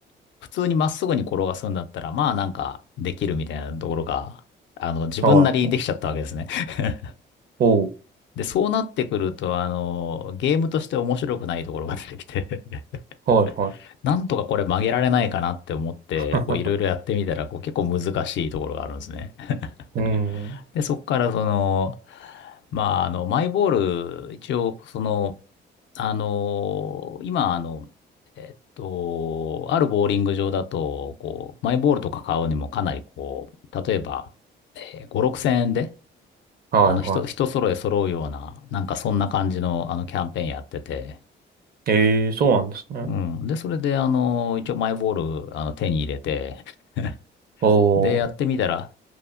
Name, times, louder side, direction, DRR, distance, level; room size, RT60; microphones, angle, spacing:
voice 1, 0.5-4.4 4.8-7.1 8.4-12.8 14.0-19.7 20.1-25.4 25.9-27.9 28.4-33.5 33.7-34.3 34.8-35.9 36.9-41.2 43.0-46.6 47.0-47.1 48.0-48.9, left 7 dB, 70° left, 0.4 m, -25 dB
voice 2, 13.3-13.7 16.3-16.4 20.0-20.6 36.7-37.2 41.9-43.1 47.6-48.2, right 5 dB, 50° right, 0.6 m, -20 dB
3.0 x 2.0 x 2.4 m
cardioid pair, 90°, 20 cm